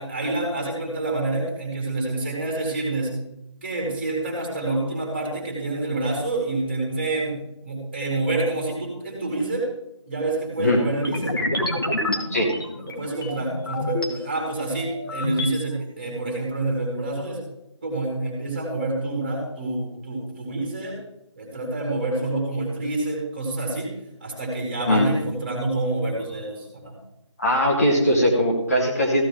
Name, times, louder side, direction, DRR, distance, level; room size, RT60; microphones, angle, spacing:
voice 1, 0.0-3.1 3.6-9.7 10.1-11.4 12.8-17.4 17.8-21.0 21.4-23.9 24.2-27.0, right 2 dB, 20° right, -1 dB, 2.7 m, -27 dB
sound 1, 11.0-14.1 14.6-15.6, left 1 dB, 45° left, 2.0 m, -28 dB
voice 2, 27.4-29.2, equal, 30° left, -1 dB, 1.4 m, -20 dB
15.0 x 8.1 x 3.8 m, 0.86 s
figure-of-eight pair, 170°, 16 cm